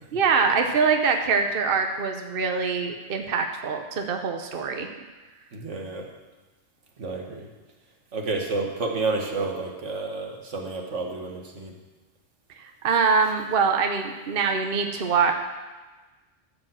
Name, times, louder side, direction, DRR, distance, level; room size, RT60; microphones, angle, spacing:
voice 1, 0.1-4.9 12.8-15.3, right 5 dB, 55° right, 4 dB, 1.0 m, -23 dB
voice 2, 5.5-6.1 7.0-7.5 8.1-11.7, right 3 dB, 80° right, 2 dB, 1.8 m, -30 dB
14.0 x 5.2 x 7.6 m, 1.2 s
omnidirectional pair, 1.2 m